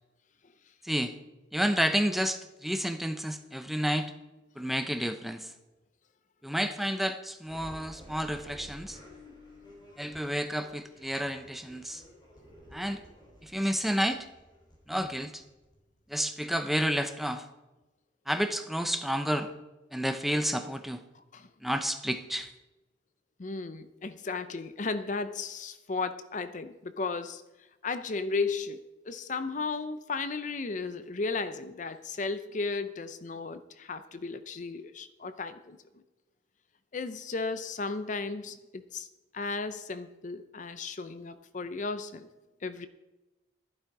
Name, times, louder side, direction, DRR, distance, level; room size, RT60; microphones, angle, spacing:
voice 1, 1.5-4.1 4.6-5.5 6.4-9.0 10.0-12.0 12.7-13.0 13.4-14.3 14.9-15.4 16.1-17.5 18.3-19.5 19.9-21.0 21.6-22.5, equal, ahead, 7 dB, 0.6 m, -30 dB
sound 1, 7.4-16.1, equal, 25° left, 3.4 m, -52 dB
voice 2, 21.1-21.5 23.4-27.4 27.8-36.0 36.9-39.1 39.3-42.3 42.6-42.9, left 4 dB, 40° left, 12 dB, 0.5 m, -35 dB
11.5 x 11.5 x 4.7 m, 1.1 s
head